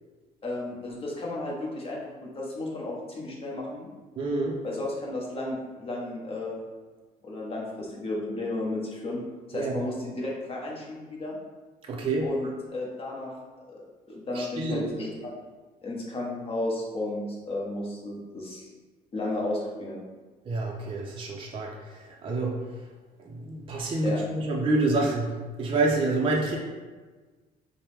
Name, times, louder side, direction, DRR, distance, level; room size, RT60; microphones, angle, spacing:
voice 1, 0.4-3.9 4.6-6.6 7.2-9.2 9.5-11.4 12.2-13.3 13.7-15.3 15.8-18.7 19.1-20.0 24.0-24.2, left 2 dB, 35° left, -3 dB, 1.0 m, -33 dB
voice 2, 4.2-4.6 9.5-9.8 11.9-12.3 14.3-14.9 20.5-22.6 23.3-25.3 25.6-26.6, right 2 dB, 30° right, -2 dB, 0.5 m, -27 dB
4.4 x 2.1 x 3.4 m, 1.3 s
cardioid pair, 110°, 17 cm